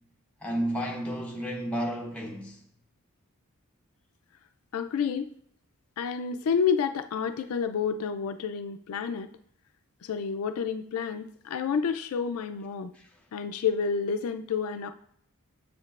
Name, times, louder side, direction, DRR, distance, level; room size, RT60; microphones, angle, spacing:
voice 1, 0.4-2.6 12.9-13.1, equal, 5° left, 0.9 m, -32 dB
voice 2, 4.7-5.3 6.0-9.3 10.0-12.9 13.3-14.9, left 6 dB, 70° left, 0.4 m, -29 dB
7.2 x 6.5 x 2.4 m
head